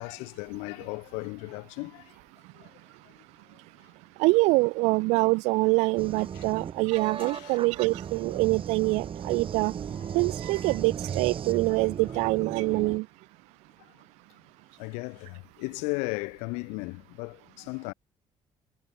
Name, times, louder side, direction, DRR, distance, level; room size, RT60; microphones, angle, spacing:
voice 1, 0.0-2.1 2.6-2.7 6.3-6.4 7.2-7.6 11.7-11.8 12.8-12.9 14.8-17.9, left 30 dB, 90° left, 5.8 m, -36 dB
voice 2, 4.2-9.7 10.1-13.1, right 25 dB, 85° right, 1.1 m, -25 dB
sound 1, 6.0-13.0, right 8 dB, 55° right, 6.4 m, -36 dB
supercardioid pair, 65°, 11 cm